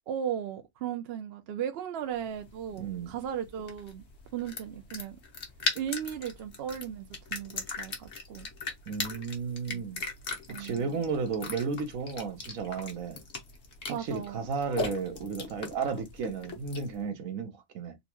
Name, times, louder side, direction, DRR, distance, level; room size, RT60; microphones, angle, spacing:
voice 1, 0.1-4.0 4.3-5.2 5.7-8.5 9.7-10.0 10.5-11.0 13.9-14.5, right 9 dB, 65° right, 0.6 m, -36 dB
sound 1, 2.2-17.0, left 4 dB, 55° left, 1.2 m, -39 dB
voice 2, 2.8-3.1 8.9-10.0 10.6-13.2 14.0-18.0, right 5 dB, 80° right, 1.3 m, -33 dB
3.9 x 2.4 x 2.9 m
omnidirectional pair, 1.4 m